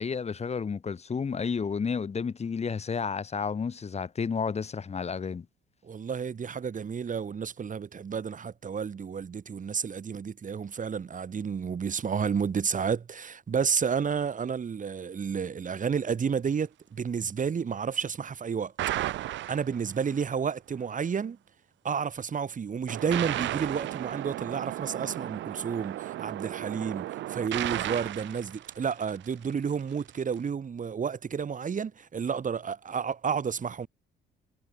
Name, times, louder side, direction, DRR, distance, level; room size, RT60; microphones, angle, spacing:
voice 1, 0.0-5.5, left 5 dB, 35° left, 1.1 m, -31 dB
voice 2, 5.8-19.1 19.5-21.4 21.8-33.9, right 6 dB, 40° right, 2.0 m, -31 dB
sound 1, 18.8-20.2 22.9-29.4, right 14 dB, 70° right, 0.5 m, -34 dB
cardioid pair, 90°, 20 cm